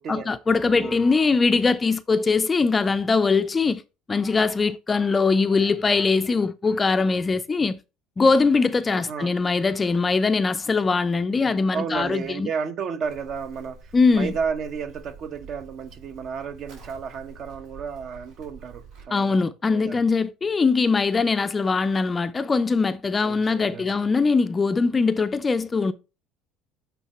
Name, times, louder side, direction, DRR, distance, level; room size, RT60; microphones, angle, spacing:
voice 1, 0.1-3.8 4.1-7.8 8.2-12.5 13.9-14.3 19.1-25.9, left 4 dB, 20° left, 0.4 m, -21 dB
voice 2, 0.7-1.0 8.9-9.3 11.7-20.0 23.2-23.9, right 6 dB, 50° right, 0.9 m, -32 dB
Livestock farm animals working animals, 13.0-19.1, right 3 dB, 80° right, 4.4 m, -46 dB
8.3 x 3.8 x 4.3 m
cardioid pair, 125°, 0 cm